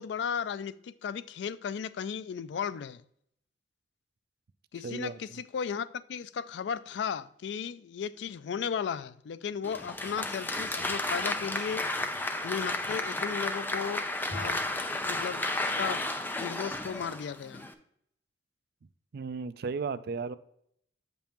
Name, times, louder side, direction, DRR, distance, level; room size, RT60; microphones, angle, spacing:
voice 1, 0.0-3.0 4.7-11.8 12.4-14.6 15.0-16.0 16.4-17.7, left 7 dB, 70° left, 0.3 m, -35 dB
voice 2, 4.8-5.4 19.1-20.4, right 5 dB, 60° right, 0.4 m, -35 dB
Applause, 9.6-17.7, left 2 dB, 10° left, 0.5 m, -33 dB
8.1 x 5.3 x 2.9 m
head